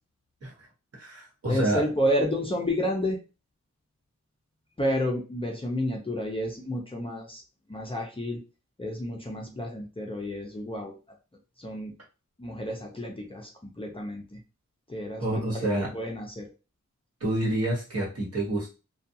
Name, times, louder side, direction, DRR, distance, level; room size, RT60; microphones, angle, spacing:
voice 1, 0.9-1.8 15.2-15.9 17.2-18.7, right 1 dB, 55° right, -3 dB, 1.2 m, -28 dB
voice 2, 1.5-3.2 4.8-7.4 7.7-8.4 8.8-10.9 11.6-11.9 12.4-14.4 14.9-16.5, equal, 20° left, 0 dB, 0.5 m, -30 dB
2.4 x 2.3 x 2.7 m, 0.31 s
wide cardioid pair, 100°, 29 cm